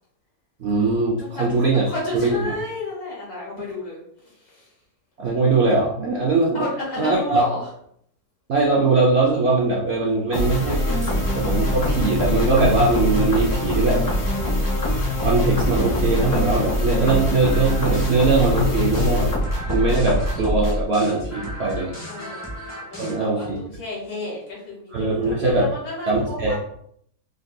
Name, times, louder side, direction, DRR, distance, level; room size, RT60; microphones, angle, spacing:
voice 1, 0.6-1.8 2.1-2.4 5.2-6.6 7.0-7.4 8.5-14.0 15.2-19.3 19.7-21.9 23.0-23.6 24.9-25.7 26.1-26.6, right 3 dB, 85° right, -3 dB, 0.5 m, -21 dB
voice 2, 1.2-4.7 6.5-7.7 22.1-22.5 22.8-26.6, left 2 dB, 65° left, -5 dB, 1.8 m, -32 dB
sound 1, 10.3-20.8, left 1 dB, 30° left, 0.4 m, -23 dB
sound 2, 17.4-23.2, equal, 10° left, 0.9 m, -36 dB
3.7 x 2.6 x 2.3 m, 0.69 s
omnidirectional pair, 1.8 m